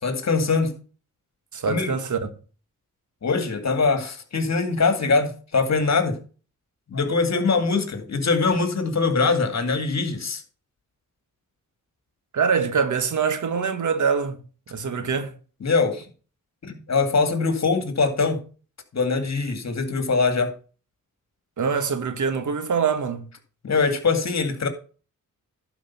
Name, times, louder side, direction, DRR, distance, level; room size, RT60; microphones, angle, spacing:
voice 1, 0.0-0.7 1.7-2.0 3.2-6.2 6.9-10.4 15.6-16.0 16.6-18.4 18.9-20.5 23.6-24.7, left 4 dB, 50° left, 2.3 m, -22 dB
voice 2, 1.5-2.2 12.3-14.4 14.7-15.3 21.6-23.2, right 6 dB, 60° right, 1.6 m, -24 dB
11.5 x 5.0 x 5.9 m
cardioid pair, 65°, 33 cm